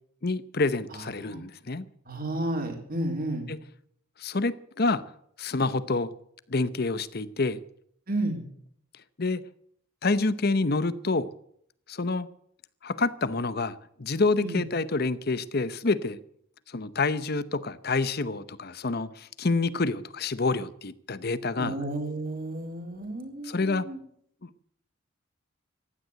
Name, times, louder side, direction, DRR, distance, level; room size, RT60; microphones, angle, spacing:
voice 1, 0.2-1.8 3.5-3.6 4.2-5.0 5.4-6.1 6.5-7.6 9.2-9.4 10.0-11.3 11.9-12.3 12.8-16.2 16.7-21.8 23.4-23.9 24.4-24.5, left 3 dB, 45° left, 0.8 m, -27 dB
voice 2, 0.9-1.4 2.1-3.5 8.1-8.4 14.4-14.6 21.6-24.0, right 1 dB, 45° right, 3.9 m, -32 dB
15.5 x 11.0 x 8.0 m
head